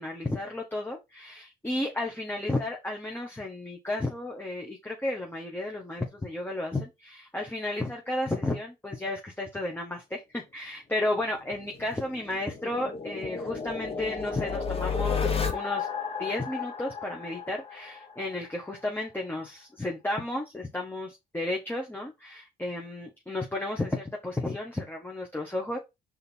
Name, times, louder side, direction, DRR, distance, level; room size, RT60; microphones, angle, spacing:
voice 1, 0.0-15.9 16.2-25.8, left 2 dB, 10° left, 1.4 m, -33 dB
sound 1, 11.5-18.3, left 5 dB, 30° left, 1.2 m, -33 dB
5.1 x 4.2 x 4.5 m
cardioid pair, 90°, 20 cm